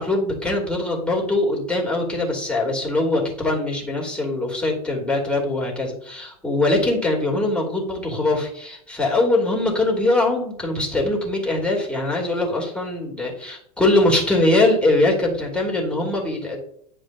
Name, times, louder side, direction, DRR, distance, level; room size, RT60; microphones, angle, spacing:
voice 1, 0.0-16.6, left 2 dB, 5° left, -2 dB, 2.7 m, -22 dB
10.0 x 4.9 x 2.7 m, 0.67 s
figure-of-eight pair, 85°, 20 cm